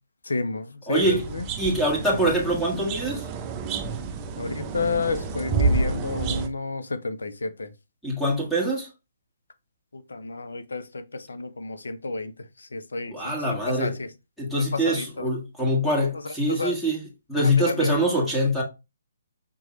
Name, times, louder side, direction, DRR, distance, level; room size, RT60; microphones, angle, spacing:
voice 1, 0.2-1.4 4.4-7.7 9.9-12.3 12.6-13.3 13.7-14.1 14.6-15.3 16.1-16.7 17.4-17.9, left 3 dB, 75° left, 0.7 m, -30 dB
voice 2, 0.9-1.2 1.6-3.3 8.0-8.9 13.1-13.9 14.4-17.0 17.3-18.6, equal, ahead, 1.6 m, -24 dB
sound 1, 1.0-6.5, right 4 dB, 25° right, 0.6 m, -29 dB
5.3 x 3.1 x 3.1 m
figure-of-eight pair, 140°, 0 cm